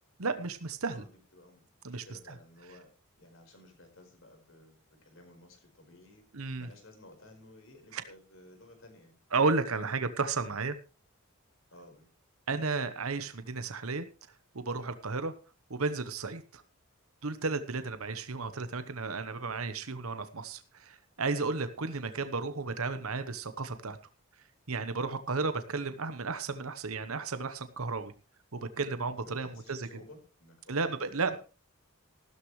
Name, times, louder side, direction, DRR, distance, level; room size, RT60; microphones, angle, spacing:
voice 1, 0.2-1.0 1.8-2.0 6.3-6.7 7.9-8.0 9.3-10.8 12.5-14.0 14.5-15.3 15.7-16.6 17.2-24.0 24.7-28.1 28.6-29.9 30.7-31.4, right 4 dB, 80° right, 11 dB, 1.0 m, -33 dB
voice 2, 0.9-2.9 3.2-6.2 6.6-9.2 9.8-10.0 11.7-12.1 29.2-31.4, left 1 dB, 65° left, 4 dB, 4.8 m, -55 dB
15.0 x 12.5 x 3.2 m, 0.34 s
head